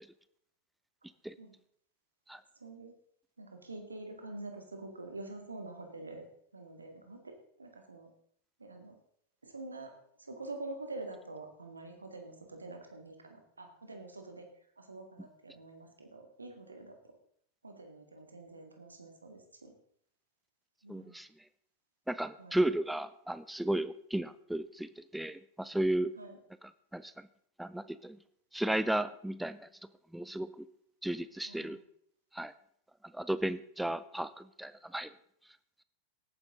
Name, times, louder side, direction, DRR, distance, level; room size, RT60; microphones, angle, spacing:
voice 1, 2.6-2.9 3.4-6.3 6.5-8.1 8.6-9.0 9.4-9.9 10.2-14.5 14.8-17.2 17.6-19.7 20.8-21.2 22.4-22.6 26.2-26.4 31.4-31.8, right 2 dB, 80° right, 5 dB, 2.0 m, -46 dB
voice 2, 20.9-21.3 22.1-26.1 26.9-27.3 27.6-28.2 28.5-29.7 30.1-30.7 31.0-31.8 32.3-32.5 33.1-35.1, right 1 dB, 5° right, 15 dB, 0.5 m, -34 dB
17.5 x 9.7 x 3.7 m, 0.68 s
figure-of-eight pair, 90°, 0 cm